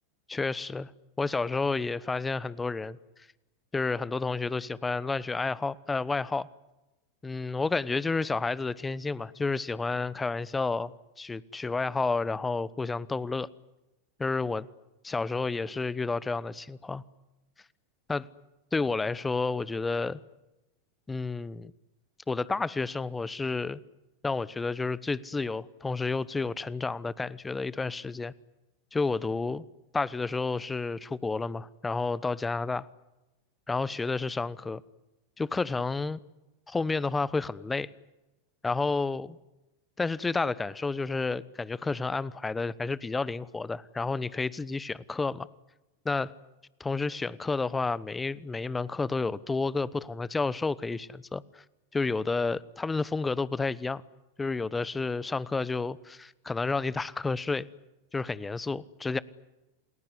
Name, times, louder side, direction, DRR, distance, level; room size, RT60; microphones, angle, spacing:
voice 1, 0.3-0.9 1.2-3.0 3.7-6.5 7.2-10.9 11.2-13.5 14.2-14.7 15.0-17.0 18.1-18.3 18.7-20.2 21.1-21.7 22.3-23.8 24.2-28.3 28.9-29.6 29.9-32.9 33.7-34.8 35.4-36.2 36.7-37.9 38.6-39.4 40.0-45.5 46.0-46.3 46.8-51.6 51.9-54.0 54.4-57.7 58.1-59.2, left 3 dB, 15° left, 19 dB, 1.0 m, -30 dB
28.5 x 19.5 x 9.8 m, 1.0 s
hypercardioid pair, 95°, 0 cm